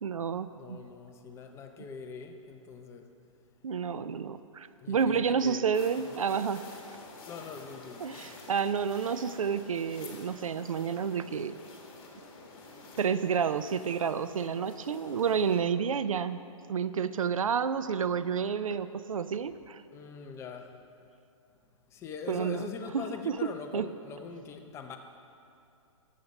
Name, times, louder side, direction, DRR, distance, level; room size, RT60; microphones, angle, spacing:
voice 1, 0.0-0.8 3.6-6.7 8.0-11.5 13.0-16.4 16.7-19.8 22.3-22.7 22.9-23.9, right 6 dB, 80° right, 13 dB, 0.5 m, -30 dB
voice 2, 0.6-3.0 4.8-5.6 7.2-8.0 19.9-20.7 21.9-25.0, left 5 dB, 15° left, 5 dB, 0.6 m, -42 dB
sound 1, 5.7-15.6, left 3 dB, 45° left, 2.0 m, -49 dB
12.5 x 7.6 x 5.4 m, 2.6 s
hypercardioid pair, 135°, 17 cm